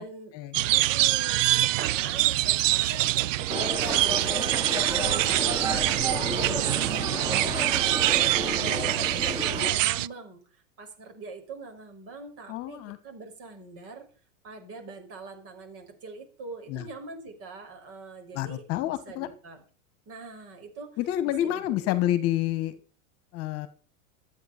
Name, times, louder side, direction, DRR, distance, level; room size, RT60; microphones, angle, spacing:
voice 1, 0.0-0.3 0.7-14.1 14.4-19.6 20.1-21.9, right 3 dB, 35° right, 4 dB, 5.8 m, -44 dB
sound 1, 0.5-10.1, right 15 dB, 75° right, 0.7 m, -25 dB
sound 2, 3.5-9.7, right 1 dB, 10° right, 4.2 m, -31 dB
voice 2, 12.5-13.0 16.7-16.9 18.3-19.3 21.0-22.8 23.3-23.7, left 13 dB, 40° left, 13 dB, 1.8 m, -28 dB
14.0 x 9.4 x 6.9 m, 0.37 s
supercardioid pair, 145°, 39 cm